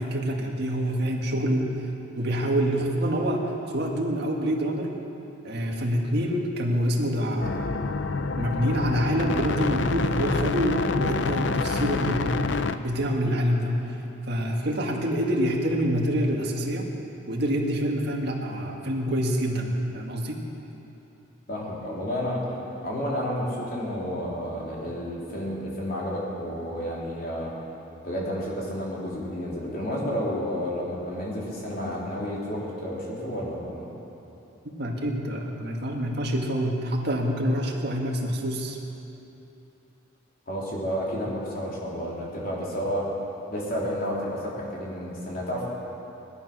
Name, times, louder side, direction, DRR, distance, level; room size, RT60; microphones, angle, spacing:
voice 1, 0.0-1.9 2.2-4.9 5.4-7.9 8.4-13.8 14.3-16.9 17.3-20.4 34.8-38.8, equal, 55° right, 0 dB, 2.0 m, -26 dB
sound 1, 7.4-12.8, left 4 dB, 65° left, 0.6 m, -27 dB
voice 2, 21.5-22.4 22.8-27.5 28.0-33.9 40.5-43.1 43.5-45.6, equal, 45° left, -5 dB, 3.6 m, -31 dB
18.5 x 12.5 x 6.2 m, 3.0 s
head